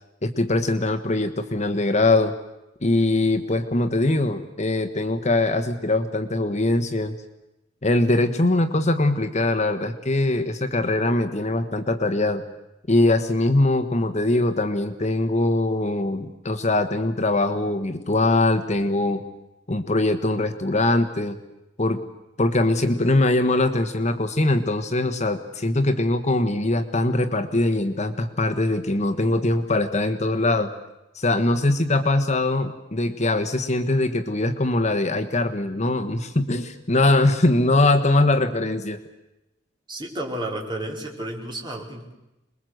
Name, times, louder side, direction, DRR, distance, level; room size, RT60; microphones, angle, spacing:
voice 1, 0.2-2.3 2.8-7.1 7.8-12.4 12.9-19.2 19.7-21.4 21.8-22.0 22.4-30.7 31.1-39.0, left 2 dB, 40° left, 8 dB, 1.3 m, -22 dB
voice 2, 39.9-42.1, right 1 dB, 25° right, -1 dB, 4.7 m, -32 dB
26.5 x 21.5 x 7.9 m, 0.94 s
head